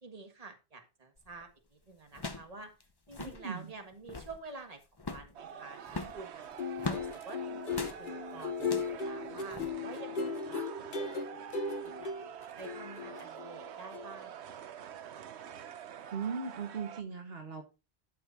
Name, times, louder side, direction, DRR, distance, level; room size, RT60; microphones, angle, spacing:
voice 1, 0.0-2.7 3.1-4.8 5.1-6.5 6.9-12.1 12.6-15.1, right 3 dB, 35° right, 5 dB, 1.7 m, -49 dB
sound 1, 1.2-1.4 2.1-2.5 2.8-2.9 3.1-3.4 3.9-4.4 5.0-5.3 5.9-7.1 7.7-8.0 8.6-9.0 9.5-9.7, left 3 dB, 25° left, 0.8 m, -40 dB
voice 2, 3.2-3.7 16.1-17.6, right 5 dB, 65° right, 5 dB, 1.6 m, -38 dB
sound 2, 5.3-17.0, right 9 dB, 90° right, 1.0 m, -46 dB
sound 3, 6.4-13.6 13.9-14.1, left 4 dB, 50° left, 1.1 m, -37 dB
12.0 x 6.8 x 2.7 m, 0.28 s
omnidirectional pair, 1.1 m